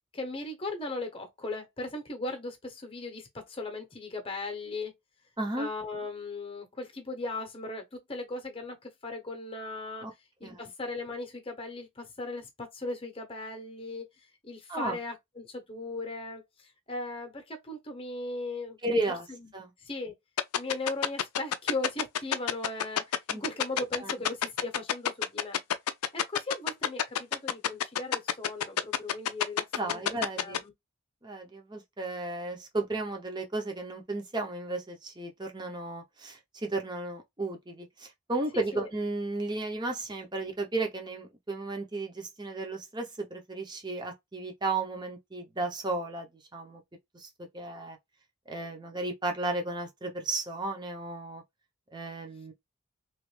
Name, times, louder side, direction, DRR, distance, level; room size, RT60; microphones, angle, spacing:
voice 1, 0.1-4.9 5.6-10.1 10.4-18.8 19.3-19.5 19.8-20.1 20.6-25.6 26.1-30.0 30.4-30.7 38.7-38.9, left 2 dB, 25° left, 0.9 m, -38 dB
voice 2, 5.4-5.7 10.0-10.1 10.4-10.6 14.7-15.0 18.8-19.3 19.5-19.7 23.3-23.4 24.0-24.1 29.7-30.6 31.2-46.3 46.5-46.8 47.1-47.3 47.5-48.0 48.5-51.4 51.9-52.5, right 2 dB, 20° right, 0.7 m, -34 dB
sound 1, 20.4-30.6, left 10 dB, 90° left, 0.4 m, -27 dB
3.1 x 2.5 x 3.2 m
head